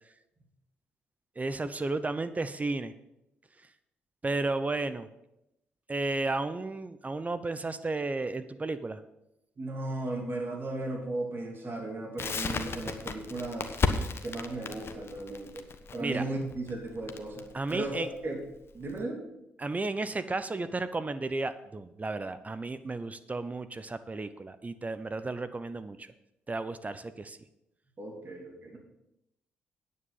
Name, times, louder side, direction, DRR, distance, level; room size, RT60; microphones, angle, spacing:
voice 1, 1.4-2.9 4.2-5.1 5.9-9.0 16.0-16.2 17.5-18.1 19.6-26.1 26.5-27.4, right 3 dB, 25° right, 12 dB, 0.8 m, -33 dB
voice 2, 9.6-13.8 14.2-15.6 15.9-17.4 17.7-18.4 18.7-19.2 28.0-28.8, right 2 dB, 45° right, 1 dB, 2.8 m, -36 dB
Crackle, 12.2-19.0, left 5 dB, 50° left, 1.2 m, -34 dB
9.5 x 8.5 x 5.6 m, 0.86 s
hypercardioid pair, 45°, 5 cm